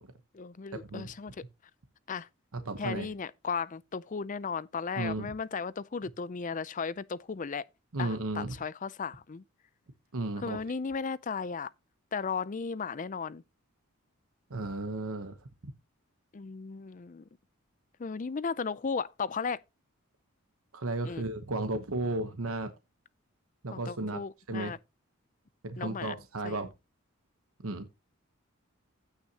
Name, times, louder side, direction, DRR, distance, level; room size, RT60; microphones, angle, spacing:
voice 1, 0.3-1.3 2.1-2.3 2.8-7.6 8.0-9.4 10.4-11.7 12.1-13.4 16.3-17.2 18.0-19.6 21.0-21.2 23.7-24.8 25.8-26.2 26.4-26.6, left 5 dB, 35° left, 0.4 m, -35 dB
voice 2, 2.5-3.1 5.0-5.3 7.9-8.5 10.1-10.6 14.5-15.4 15.6-15.7 20.7-22.7 23.6-24.2 24.5-24.7 25.6-26.7 27.6-27.9, right 2 dB, 75° right, 1.0 m, -34 dB
15.5 x 5.8 x 2.9 m
head